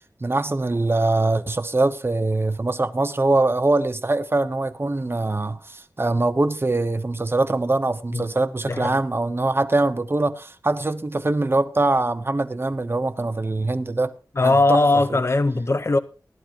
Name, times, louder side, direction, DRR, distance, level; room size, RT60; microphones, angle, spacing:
voice 1, 0.2-14.1 14.4-14.8, right 2 dB, 35° right, 0.8 m, -23 dB
voice 2, 8.7-9.0 14.4-16.0, left 2 dB, 40° left, 0.8 m, -19 dB
16.0 x 11.5 x 2.9 m
wide cardioid pair, 65°, 7 cm